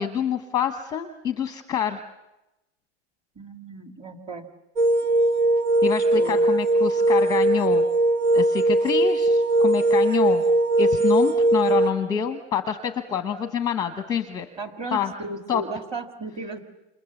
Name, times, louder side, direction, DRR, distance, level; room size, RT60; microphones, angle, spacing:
voice 1, 0.0-2.0 5.8-7.8 8.3-10.4 10.8-14.5 14.9-15.1 15.5-15.6, left 8 dB, 10° left, 7 dB, 0.9 m, -27 dB
voice 2, 3.4-4.5 6.1-6.5 14.6-16.6, right 2 dB, 15° right, 6 dB, 2.1 m, -35 dB
sound 1, 4.8-11.9, right 2 dB, 85° right, 1.9 m, -20 dB
28.0 x 28.0 x 7.1 m, 0.98 s
supercardioid pair, 160°, 33 cm